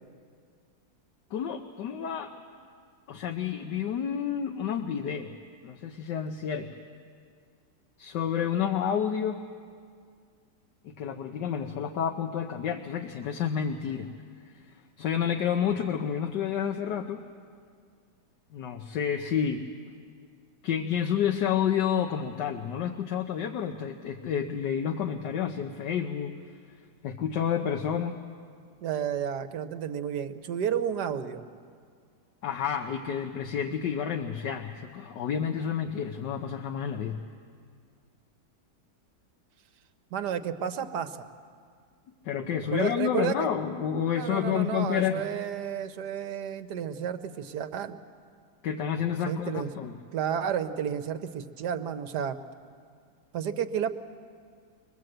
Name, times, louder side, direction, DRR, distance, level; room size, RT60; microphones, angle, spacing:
voice 1, 1.3-2.3 3.1-5.3 5.6-6.7 8.0-9.4 10.8-14.1 14.7-17.2 18.5-19.6 20.6-26.3 27.0-28.2 32.4-37.2 42.2-45.2 48.6-50.0, left 8 dB, 80° left, 4 dB, 1.5 m, -30 dB
voice 2, 28.8-31.5 40.1-41.3 42.7-43.4 44.1-48.0 49.2-49.7 50.1-52.4 53.3-53.9, right 8 dB, 70° right, 9 dB, 1.5 m, -31 dB
23.5 x 20.5 x 7.8 m, 2.1 s
omnidirectional pair, 1.9 m